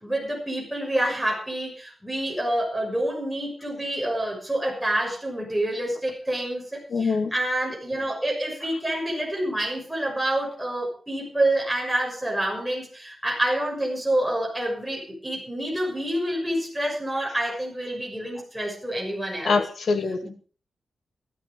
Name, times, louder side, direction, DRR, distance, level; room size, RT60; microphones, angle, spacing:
voice 1, 0.0-19.6 20.2-20.3, right 1 dB, 5° right, -1 dB, 6.4 m, -27 dB
voice 2, 6.9-7.3 19.4-20.3, left 4 dB, 65° left, 4 dB, 2.6 m, -24 dB
15.5 x 12.0 x 5.0 m, 0.40 s
wide cardioid pair, 130°, 0 cm